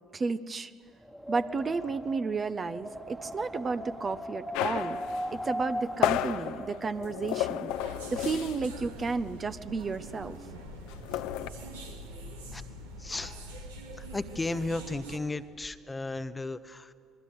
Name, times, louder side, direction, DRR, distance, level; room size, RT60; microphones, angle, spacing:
voice 1, 0.1-0.7 1.3-5.0 5.3-7.7 8.1-10.4, right 4 dB, 35° right, 11 dB, 1.1 m, -32 dB
Wind, 1.0-7.1, equal, ahead, 1.8 m, -38 dB
sound 1, 4.5-8.8 9.1-9.3 9.6-11.5, left 13 dB, 65° left, 1.0 m, -33 dB
sound 2, 7.7-15.2, right 1 dB, 80° right, 2.3 m, -44 dB
voice 2, 13.0-13.3 14.0-16.9, left 2 dB, 20° left, 12 dB, 1.2 m, -34 dB
26.5 x 22.0 x 9.6 m, 2.2 s
figure-of-eight pair, 55°, 0 cm